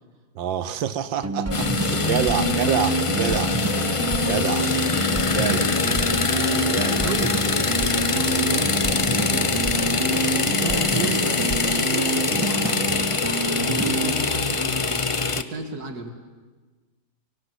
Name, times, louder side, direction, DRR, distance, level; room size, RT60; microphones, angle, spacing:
voice 1, 0.3-3.6 4.3-4.7 5.3-5.6 6.7-7.0, right 9 dB, 90° right, 14 dB, 1.8 m, -27 dB
sound 1, 1.2-14.1, right 3 dB, 20° right, 0.4 m, -28 dB
sound 2, 1.5-15.4, left 4 dB, 40° left, 0.4 m, -23 dB
voice 2, 2.1-2.9 5.4-6.0 6.9-7.4 7.7-9.6 10.6-13.1 13.5-15.0 15.3-16.1, right 2 dB, 55° right, 6 dB, 3.0 m, -34 dB
24.5 x 23.0 x 10.0 m, 1.4 s
omnidirectional pair, 2.0 m